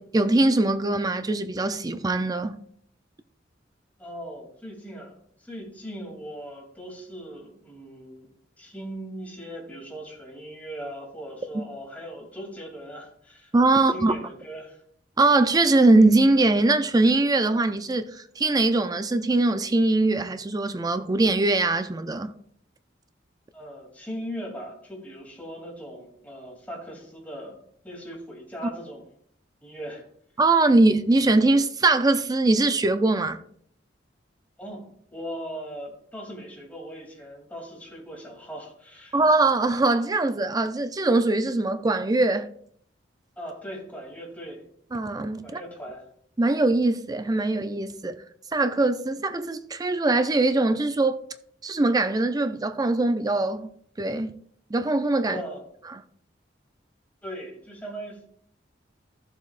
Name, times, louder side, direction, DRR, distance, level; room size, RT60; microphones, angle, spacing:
voice 1, 0.0-2.6 11.5-11.6 13.5-14.1 15.2-22.3 30.4-33.4 39.1-42.5 44.9-45.6 46.4-48.2 48.5-51.2 51.6-54.4 54.7-55.4 55.9-56.0, right 2 dB, 20° right, 0.4 m, -22 dB
voice 2, 4.0-8.3 8.6-14.8 23.5-29.0 29.6-30.0 34.6-39.2 43.4-44.6 45.4-46.0 55.2-55.6 57.2-58.3, equal, 10° left, 2.8 m, -39 dB
14.5 x 7.3 x 2.5 m
head